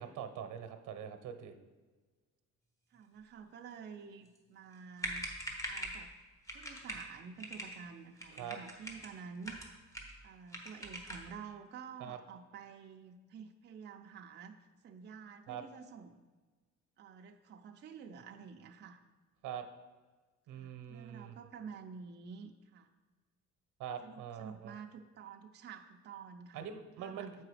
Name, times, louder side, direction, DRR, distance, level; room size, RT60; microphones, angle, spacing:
voice 1, 0.0-1.5 8.3-8.6 12.0-12.2 15.5-15.6 19.4-19.7 20.5-21.3 23.8-24.7 26.5-27.4, right 8 dB, 90° right, 8 dB, 0.8 m, -43 dB
voice 2, 2.9-5.3 5.7-6.1 6.5-9.7 10.2-14.5 14.8-16.2 17.0-19.0 20.5-22.9 24.0-26.7 27.0-27.3, right 6 dB, 35° right, 4 dB, 0.5 m, -50 dB
sound 1, 4.7-4.8 5.0-6.0 6.5-7.1 7.4-7.8 8.2-9.1 9.4-10.2 10.5-11.3, equal, 10° left, 1.0 m, -42 dB
7.7 x 4.8 x 4.9 m, 1.3 s
cardioid pair, 150°, 30 cm